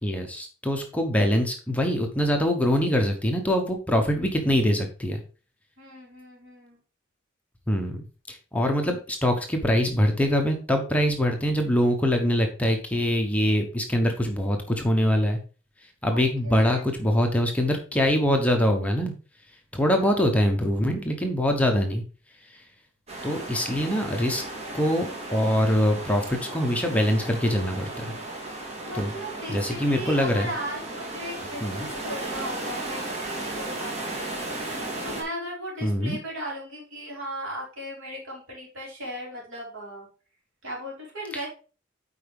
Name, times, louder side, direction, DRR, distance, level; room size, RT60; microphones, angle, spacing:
voice 1, 0.0-5.2 7.7-15.4 16.0-19.1 19.7-22.0 22.5-22.6 23.2-24.4 24.7-28.1 28.9-29.1 29.5-30.5 31.6-31.9 35.8-36.2 41.3-41.4, equal, 5° left, 3 dB, 0.9 m, -24 dB
voice 2, 5.8-6.8 16.1-16.2 16.4-16.8 19.9-20.2 28.8-34.4 35.0-40.1 40.6-41.5, equal, 70° right, -3 dB, 3.6 m, -37 dB
sound 1, 23.1-35.2, right 2 dB, 35° right, 1.9 m, -35 dB
8.4 x 4.8 x 3.5 m, 0.37 s
head